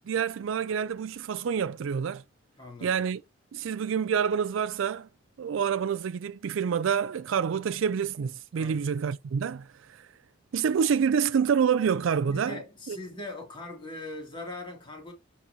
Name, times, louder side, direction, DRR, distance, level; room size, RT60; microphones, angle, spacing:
voice 1, 0.1-2.2 2.8-3.2 3.5-5.1 5.4-10.1 10.5-12.6 12.9-13.0, right 7 dB, 75° right, 0.4 m, -27 dB
voice 2, 2.6-3.0 8.5-8.9 12.3-15.1, left 2 dB, 25° left, 2.8 m, -41 dB
10.0 x 4.2 x 2.8 m
head